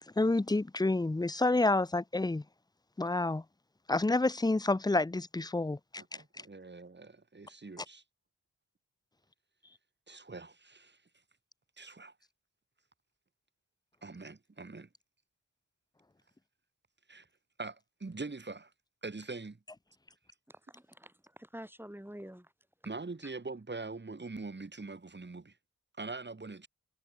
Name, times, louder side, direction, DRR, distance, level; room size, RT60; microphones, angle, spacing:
voice 1, 0.2-2.4 3.0-3.4 3.9-6.0, left 2 dB, 10° left, 0.7 m, -29 dB
voice 2, 6.1-8.0 10.1-11.0 11.8-12.1 14.0-14.9 17.1-17.3 17.6-18.7 19.0-19.6 22.8-25.5 26.0-26.7, right 3 dB, 35° right, 2.2 m, -43 dB
voice 3, 20.5-22.5, equal, 5° right, 7.6 m, -48 dB
cardioid pair, 45°, 33 cm